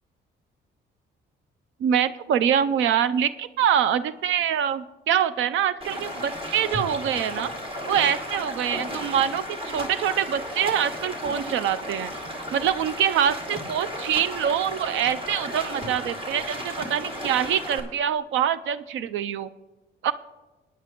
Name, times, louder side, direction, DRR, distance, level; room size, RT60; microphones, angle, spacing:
voice 1, 1.8-7.5 7.9-12.1 12.5-19.5 20.0-20.1, right 9 dB, 75° right, 15 dB, 0.5 m, -25 dB
Stream, 5.8-17.8, equal, 25° right, 2.2 m, -34 dB
19.5 x 9.5 x 3.0 m, 1.2 s
cardioid pair, 90°, 20 cm